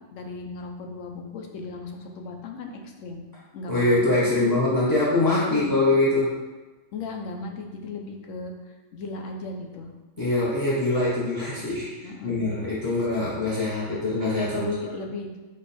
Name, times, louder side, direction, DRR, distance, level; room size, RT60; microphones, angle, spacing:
voice 1, 0.1-3.2 3.5-4.5 5.5-5.8 6.9-8.5 8.9-9.9 12.0-12.4 12.9-13.1 14.5-15.4, left 3 dB, 80° left, 2 dB, 1.0 m, -36 dB
voice 2, 3.7-6.3 10.2-14.7, left 2 dB, 25° left, -7 dB, 0.5 m, -23 dB
5.2 x 2.3 x 4.1 m, 1.2 s
omnidirectional pair, 1.3 m